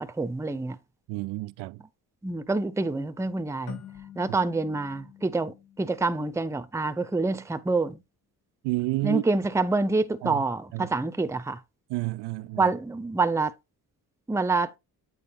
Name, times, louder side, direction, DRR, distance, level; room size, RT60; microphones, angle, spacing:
voice 1, 0.2-0.8 2.2-3.8 4.2-8.0 9.0-11.6 12.6-13.5 14.3-14.7, right 3 dB, 5° right, 0.7 m, -27 dB
voice 2, 1.1-1.8 4.3-4.4 8.6-9.2 10.2-10.4 10.7-10.9 11.9-12.7, right 20 dB, 85° right, 0.5 m, -30 dB
sound 1, 3.7-6.8, left 10 dB, 65° left, 4.0 m, -47 dB
8.9 x 3.6 x 3.5 m
supercardioid pair, 65°, 40 cm